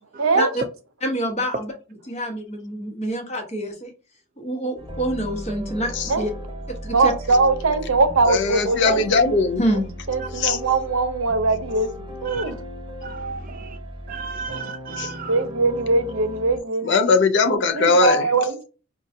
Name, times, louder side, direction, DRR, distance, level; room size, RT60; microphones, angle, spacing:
voice 1, 0.2-0.5 6.1-6.2 6.9-9.2 10.1-11.9 12.2-12.6 14.5-14.6 15.3-16.9 17.7-18.6, right 3 dB, 75° right, 0.7 m, -21 dB
voice 2, 1.0-1.7 2.1-3.9 4.4-6.3 6.7-7.1 9.6-9.9, right 1 dB, 30° left, 0.9 m, -26 dB
sound 1, 4.8-16.6, equal, 20° right, 0.9 m, -36 dB
voice 3, 8.3-9.6 10.3-10.6 15.0-15.1 16.8-18.3, left 3 dB, 55° left, 0.5 m, -19 dB
voice 4, 13.0-13.8 14.1-15.3, right 5 dB, 40° right, 0.3 m, -34 dB
5.1 x 2.3 x 2.6 m
head